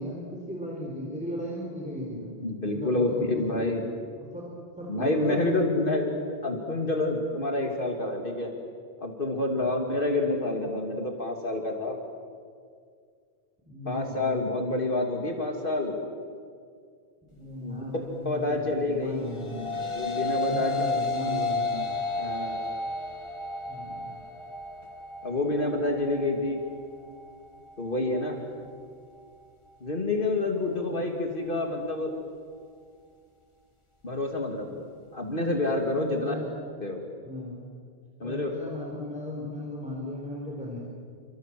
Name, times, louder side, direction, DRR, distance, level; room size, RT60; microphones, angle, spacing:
voice 1, 0.0-2.4 2.7-3.6 4.2-4.5 4.8-5.6 9.5-9.7 13.7-14.5 17.3-19.6 20.4-21.8 23.6-24.1 30.6-31.0 35.9-36.5 37.2-37.6 38.2-40.8, left 1 dB, 5° right, -3 dB, 4.5 m, -36 dB
voice 2, 2.4-3.9 4.9-6.1 6.4-8.5 9.0-12.0 13.8-16.0 17.6-17.8 18.2-19.3 19.9-20.7 21.3-21.5 22.2-22.6 25.2-26.6 27.8-28.4 29.8-32.1 34.0-34.8 35.1-36.3 36.8-37.0 38.2-38.5, left 2 dB, 55° left, 2 dB, 2.8 m, -28 dB
sound 1, 19.2-28.3, left 3 dB, 30° left, 2.2 m, -32 dB
29.0 x 25.0 x 7.7 m, 2.1 s
omnidirectional pair, 1.1 m